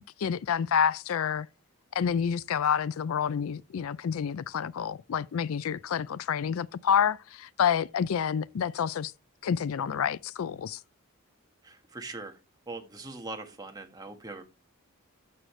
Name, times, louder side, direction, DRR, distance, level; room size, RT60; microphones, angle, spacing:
voice 1, 0.2-1.5 1.9-9.1 9.4-10.8, left 7 dB, 70° left, 0.4 m, -28 dB
voice 2, 11.6-12.4 12.7-14.4, right 2 dB, 15° right, 1.5 m, -41 dB
12.5 x 6.5 x 3.2 m
head